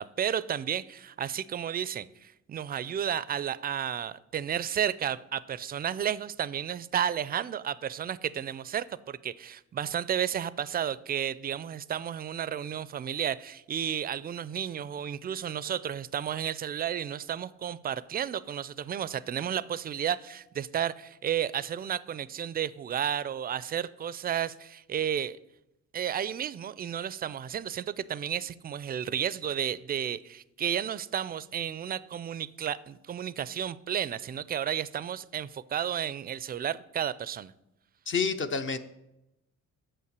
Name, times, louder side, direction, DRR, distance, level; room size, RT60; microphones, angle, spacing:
voice 1, 0.0-25.4 25.9-37.5, right 9 dB, 30° right, 18 dB, 0.4 m, -32 dB
voice 2, 38.1-38.8, left 5 dB, 40° left, 9 dB, 0.6 m, -28 dB
7.2 x 5.6 x 6.7 m, 0.90 s
cardioid pair, 90°, 30 cm